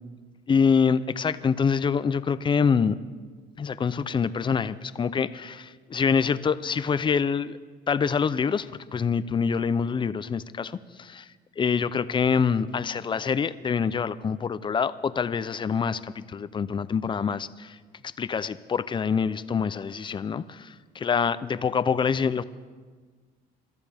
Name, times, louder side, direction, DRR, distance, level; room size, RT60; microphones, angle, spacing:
voice 1, 0.5-3.0 3.6-7.6 7.9-11.3 11.6-17.8 18.0-22.4, left 6 dB, 30° left, 15 dB, 0.6 m, -25 dB
26.5 x 13.5 x 3.5 m, 1.5 s
cardioid pair, 110°, 17 cm